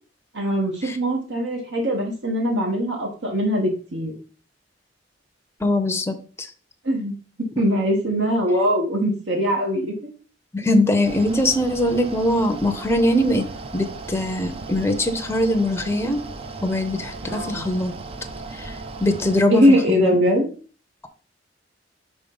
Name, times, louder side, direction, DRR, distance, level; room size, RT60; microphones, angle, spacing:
voice 1, 0.3-4.1 6.8-7.1 7.6-10.1 17.2-17.7 19.5-20.5, equal, 75° right, 0 dB, 1.4 m, -21 dB
voice 2, 5.6-6.5 10.5-13.4 13.7-16.2 16.6-17.9 18.5-18.8 19.0-20.1, left 1 dB, 15° left, 5 dB, 0.7 m, -22 dB
Mechanical fan, 11.0-19.4, right 3 dB, 30° right, 0.5 m, -36 dB
5.1 x 3.7 x 5.4 m, 0.39 s
head